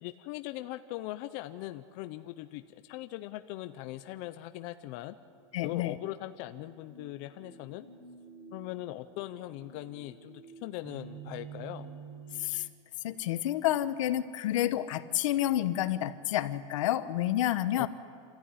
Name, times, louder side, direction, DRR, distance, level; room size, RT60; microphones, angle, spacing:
voice 1, 0.0-5.2 5.6-7.9 8.5-11.9 17.8-17.9, left 16 dB, 45° left, 9 dB, 0.8 m, -40 dB
sound 1, 4.9-12.5, right 5 dB, 60° right, 3.9 m, -50 dB
voice 2, 5.5-6.0 12.4-12.7 13.0-17.9, left 13 dB, 75° left, 12 dB, 1.1 m, -29 dB
27.5 x 15.0 x 9.9 m, 2.2 s
supercardioid pair, 165°, 17 cm